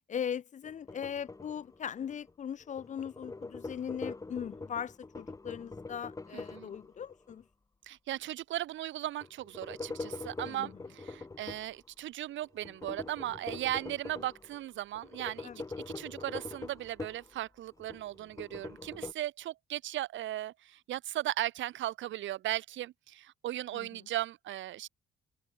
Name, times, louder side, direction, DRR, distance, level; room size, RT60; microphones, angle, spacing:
voice 1, 0.1-7.4 10.4-10.7 15.4-15.6 23.7-23.9, left 8 dB, 40° left, 0.4 m, -39 dB
sound 1, 0.6-2.3 2.6-7.4 9.2-11.7 12.6-14.6 15.0-17.3 17.7-19.1, left 3 dB, 15° left, 0.8 m, -44 dB
voice 2, 6.3-6.7 7.8-24.9, right 14 dB, 70° right, 0.7 m, -37 dB
open air
cardioid pair, 90°, 20 cm